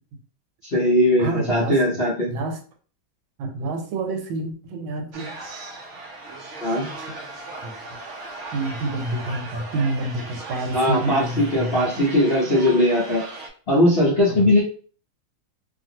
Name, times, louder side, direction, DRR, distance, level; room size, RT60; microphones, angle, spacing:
voice 1, 0.6-2.3 6.6-6.9 10.7-13.2 13.7-14.6, left 1 dB, 55° left, -8 dB, 0.6 m, -19 dB
voice 2, 1.2-2.6 3.4-5.4 7.0-7.2 7.6-8.0 8.5-12.0 14.3-14.5, right 2 dB, 90° right, 5 dB, 1.5 m, -28 dB
sound 1, 5.1-13.5, right 2 dB, 75° right, 0.6 m, -37 dB
3.1 x 2.5 x 2.7 m, 0.42 s
omnidirectional pair, 2.2 m